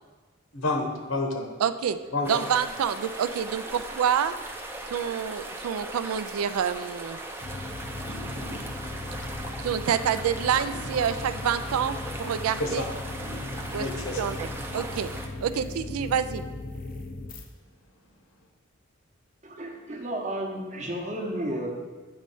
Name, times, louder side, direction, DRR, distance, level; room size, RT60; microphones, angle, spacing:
voice 1, 0.5-1.5 2.1-2.4 8.3-8.7 12.6-12.8 13.7-14.2 15.5-15.6, left 2 dB, 75° left, 3 dB, 1.0 m, -30 dB
voice 2, 1.6-2.0 2.3-4.3 4.9-7.2 9.6-12.8 13.7-13.9 14.2-15.1 15.4-16.4, right 8 dB, 85° right, 12 dB, 0.4 m, -27 dB
sound 1, 2.2-15.3, right 2 dB, 10° right, 0.4 m, -39 dB
sound 2, 7.4-17.4, left 2 dB, 40° left, 0.5 m, -37 dB
voice 3, 19.4-21.7, right 1 dB, 35° right, 1 dB, 0.8 m, -32 dB
8.7 x 3.1 x 5.3 m, 1.3 s
head